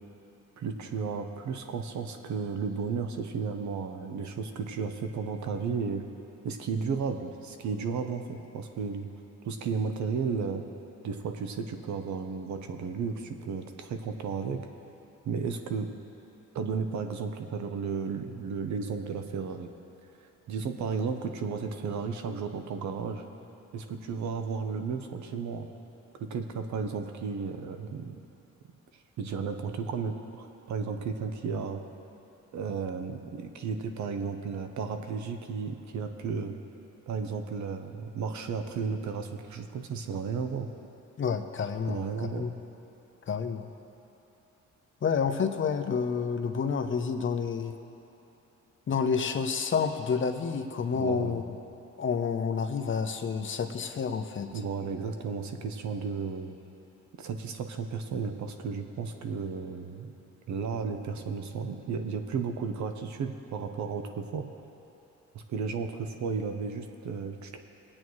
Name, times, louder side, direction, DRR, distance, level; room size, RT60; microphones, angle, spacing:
voice 1, 0.6-6.0 6.4-9.1 9.4-10.6 11.0-14.6 15.2-15.9 16.5-19.7 20.5-23.2 23.7-25.7 26.2-28.2 29.2-31.8 32.5-36.6 37.1-40.7 41.9-42.5 50.9-51.4 54.5-56.6 57.2-60.1 60.5-64.5 65.3-67.6, right 5 dB, 70° right, 6 dB, 0.9 m, -33 dB
voice 2, 41.2-42.0 42.3-42.5 43.3-43.7 45.0-47.7 48.9-51.4 52.0-54.5, left 6 dB, 40° left, 6 dB, 0.8 m, -29 dB
20.0 x 8.7 x 3.2 m, 3.0 s
cardioid pair, 90°, 30 cm